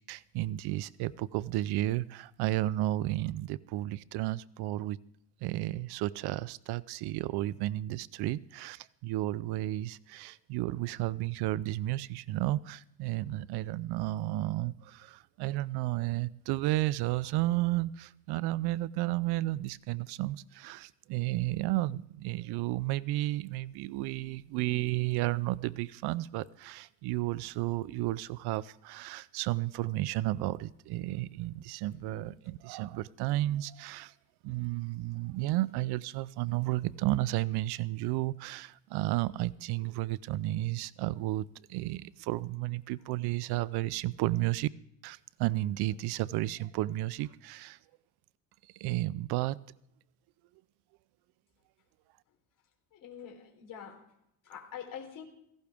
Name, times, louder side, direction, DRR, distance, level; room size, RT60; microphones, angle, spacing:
voice 1, 0.1-5.0 5.4-34.1 34.4-44.7 45.0-47.8 48.6-49.6, right 16 dB, 75° right, 18 dB, 0.5 m, -32 dB
voice 2, 52.9-54.0 54.4-55.2, left 8 dB, 55° left, 2 dB, 3.6 m, -45 dB
17.0 x 15.5 x 3.5 m, 0.74 s
cardioid pair, 140°, 39 cm